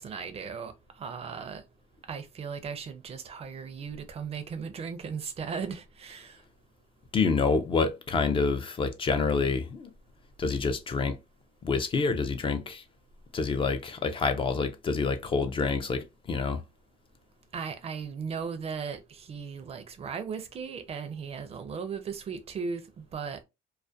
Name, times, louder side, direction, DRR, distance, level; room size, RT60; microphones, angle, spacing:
voice 1, 0.0-1.6 2.1-6.4 17.5-23.4, right 6 dB, 35° right, 0.4 m, -37 dB
voice 2, 7.1-9.9 10.4-11.2 11.6-12.8 13.3-16.6, left 4 dB, 30° left, 0.4 m, -27 dB
2.3 x 2.1 x 2.5 m
cardioid pair, 110°, 17 cm